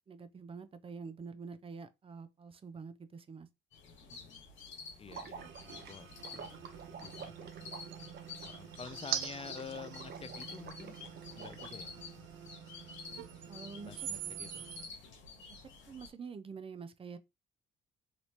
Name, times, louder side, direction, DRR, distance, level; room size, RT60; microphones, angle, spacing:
voice 1, 0.1-3.5 13.5-14.1 15.6-17.2, right 5 dB, 30° right, 0.5 m, -47 dB
sound 1, 3.7-16.1, left 5 dB, 70° left, 1.3 m, -50 dB
voice 2, 5.0-7.7 8.4-11.0 11.4-12.0 13.8-14.7, left 6 dB, 30° left, 0.4 m, -49 dB
Water / Liquid, 5.1-11.8, right 6 dB, 55° right, 0.8 m, -50 dB
sound 2, 5.4-14.9, right 11 dB, 85° right, 0.6 m, -45 dB
3.0 x 3.0 x 2.8 m
cardioid pair, 90°, 20 cm